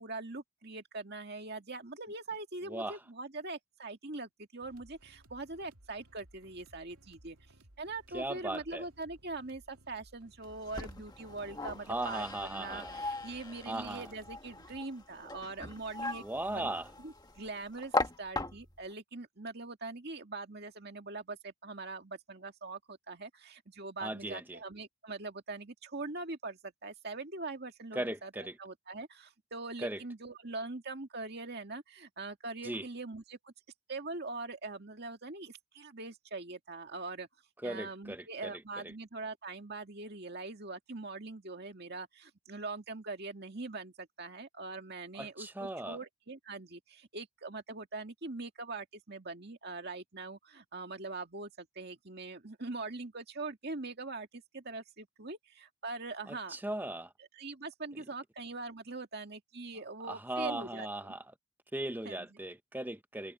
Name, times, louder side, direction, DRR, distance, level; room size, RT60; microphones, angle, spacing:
voice 1, 0.0-7.4 7.8-16.7 17.0-33.5 33.9-37.3 37.6-56.6 57.2-60.9 62.0-62.4, right 3 dB, 45° right, 2.2 m, -42 dB
sound 1, 4.6-14.8, right 1 dB, 90° right, 2.6 m, -61 dB
voice 2, 8.1-8.8 11.9-13.0 13.7-14.1 16.2-16.9 24.0-24.6 27.9-28.6 29.8-30.0 32.6-32.9 37.6-38.6 45.2-46.0 56.3-57.1 60.1-61.2 61.7-63.3, right 1 dB, 10° right, 0.7 m, -38 dB
sound 2, 10.4-18.9, left 3 dB, 20° left, 1.3 m, -39 dB
head